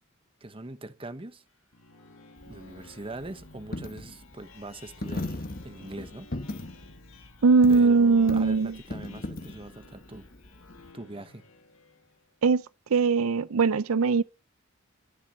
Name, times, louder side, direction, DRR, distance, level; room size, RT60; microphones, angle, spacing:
voice 1, 0.4-1.4 2.4-6.3 7.7-10.3 10.9-11.4, right 2 dB, 25° right, 1.0 m, -42 dB
sound 1, 1.5-12.3, left 3 dB, 75° left, 2.1 m, -54 dB
Coin (dropping), 2.4-10.9, left 2 dB, 45° left, 1.1 m, -39 dB
voice 2, 7.4-8.8 12.4-12.6 12.9-14.2, right 4 dB, 85° right, 0.5 m, -20 dB
13.0 x 6.7 x 6.6 m
head